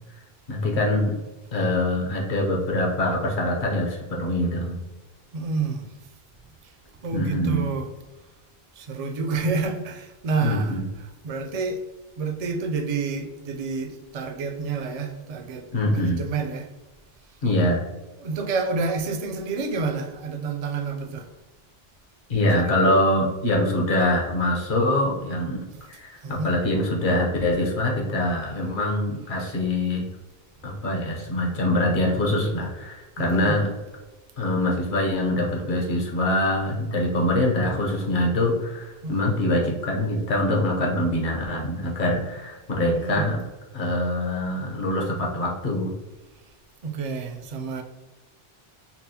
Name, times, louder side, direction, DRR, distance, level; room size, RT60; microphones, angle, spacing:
voice 1, 0.5-1.2 1.5-4.8 7.1-7.7 10.4-10.8 15.7-16.2 17.4-17.8 22.3-25.6 25.9-30.1 30.6-33.7 34.4-43.4 43.7-45.9, left 1 dB, 55° left, -1 dB, 1.0 m, -24 dB
voice 2, 5.3-5.8 7.0-7.9 8.8-10.8 11.2-11.8 12.2-16.7 18.2-21.3 22.5-22.9 25.8-25.9 26.2-26.5 30.7-30.8 33.2-33.5 39.0-39.2 42.9-43.3 46.8-47.8, right 4 dB, 55° right, 5 dB, 0.4 m, -29 dB
5.7 x 2.0 x 2.8 m, 1.2 s
omnidirectional pair, 1.0 m